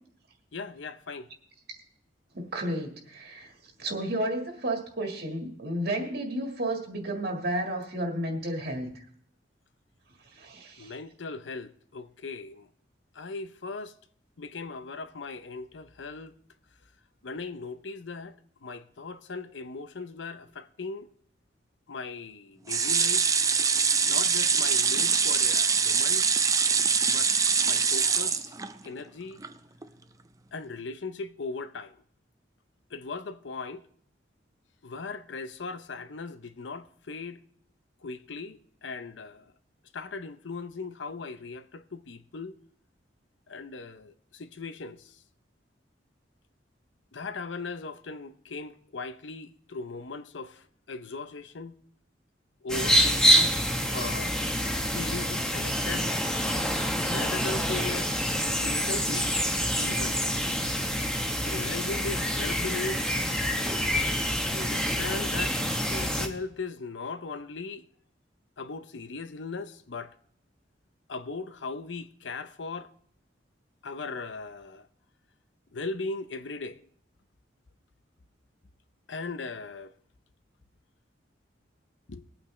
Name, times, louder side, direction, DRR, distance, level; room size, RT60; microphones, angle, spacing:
voice 1, 0.5-1.3 10.8-12.7 13.1-13.9 14.4-16.3 17.2-18.4 18.6-21.1 21.9-23.3 24.1-26.3 27.1-27.3 27.6-28.5 28.8-29.4 30.5-31.9 32.9-33.8 34.8-37.4 38.0-39.4 39.9-42.5 43.5-45.2 47.1-51.8 52.6-53.6 53.9-54.4 54.9-56.1 57.1-58.1 58.6-59.3 59.8-60.2 61.4-63.0 64.4-65.6 65.8-67.8 68.6-70.1 71.1-72.9 73.8-74.9 75.7-76.8 79.1-79.9 82.1-82.3, left 3 dB, 85° left, 0.7 m, -38 dB
voice 2, 2.5-3.5 3.8-8.9 10.3-11.0, right 1 dB, 60° right, 1.8 m, -32 dB
sound 1, 22.7-29.0 29.4-29.5 29.8-29.9, right 5 dB, 20° right, 0.5 m, -24 dB
sound 2, 52.7-66.3, equal, 5° left, 1.1 m, -27 dB
21.0 x 8.8 x 3.2 m
head